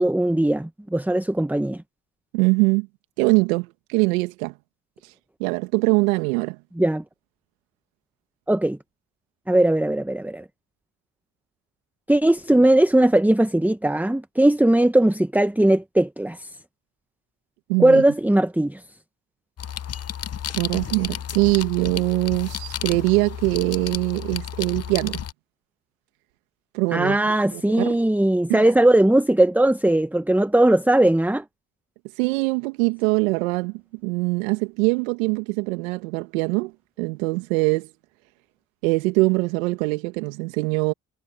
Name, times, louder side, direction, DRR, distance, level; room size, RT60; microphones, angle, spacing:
voice 1, 0.0-1.8 6.8-7.0 8.5-8.8 9.5-10.4 12.1-16.5 17.8-18.8 26.9-31.4, right 1 dB, 5° right, 1.2 m, -19 dB
voice 2, 2.3-2.9 3.2-4.5 5.4-6.6 17.7-18.0 20.6-25.2 26.7-27.2 27.5-28.0 28.5-28.6 32.2-33.7 34.0-36.7 37.0-37.9 38.8-40.9, right 26 dB, 85° right, 1.8 m, -22 dB
sound 1, 19.6-25.3, left 9 dB, 40° left, 0.9 m, -32 dB
hypercardioid pair, 45°, 39 cm